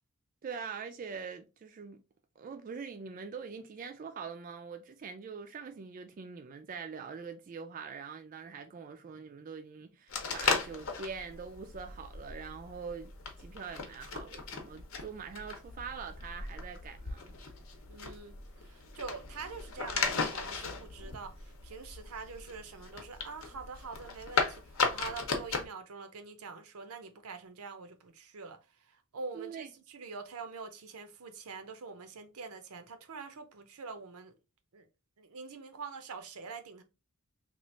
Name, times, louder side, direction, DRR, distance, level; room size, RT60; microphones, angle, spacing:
voice 1, 0.4-2.0 2.4-13.1 13.4-17.4 29.3-29.7, right 5 dB, 40° right, 0.3 m, -43 dB
sound 1, 10.1-25.7, left 4 dB, 65° left, 0.8 m, -37 dB
voice 2, 17.9-24.6 24.9-28.6 28.9-34.3 34.7-34.9 35.2-36.8, right 4 dB, 80° right, 0.6 m, -45 dB
3.0 x 2.4 x 4.1 m
head